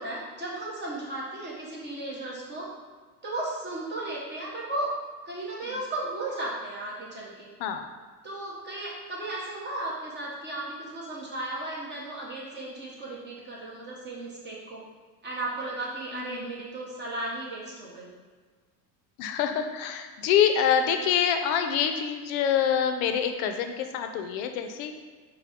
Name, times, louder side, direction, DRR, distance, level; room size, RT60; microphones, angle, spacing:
voice 1, 0.0-2.7 3.2-4.9 5.2-7.5 8.2-14.8 15.2-18.1, right 2 dB, 20° right, -5 dB, 1.1 m, -35 dB
voice 2, 16.1-16.5 19.2-25.0, left 8 dB, 65° left, 7 dB, 0.6 m, -26 dB
4.6 x 2.3 x 3.6 m, 1.5 s
supercardioid pair, 110°, 48 cm